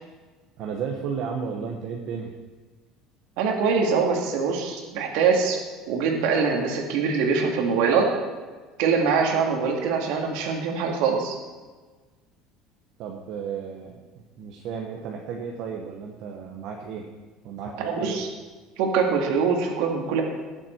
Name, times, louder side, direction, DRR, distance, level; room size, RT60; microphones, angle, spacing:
voice 1, 0.6-2.3 13.0-17.1 17.4-18.2, right 6 dB, 50° right, 1 dB, 1.1 m, -33 dB
voice 2, 3.4-5.6 5.9-8.1 8.8-11.4 17.8-18.3 18.8-20.2, right 5 dB, 65° right, 2 dB, 2.0 m, -23 dB
18.5 x 7.6 x 4.5 m, 1.4 s
cardioid pair, 170°, 0 cm